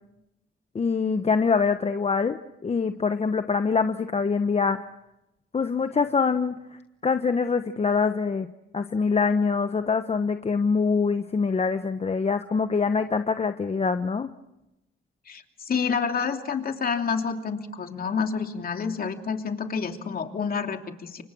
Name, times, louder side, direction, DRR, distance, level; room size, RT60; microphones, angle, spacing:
voice 1, 0.7-4.8 5.5-6.5 7.0-8.5 8.7-14.3, left 5 dB, 30° left, 9 dB, 1.1 m, -24 dB
voice 2, 15.3-21.2, left 6 dB, 50° left, 5 dB, 2.9 m, -28 dB
29.0 x 24.5 x 6.3 m, 0.90 s
cardioid pair, 90°, 20 cm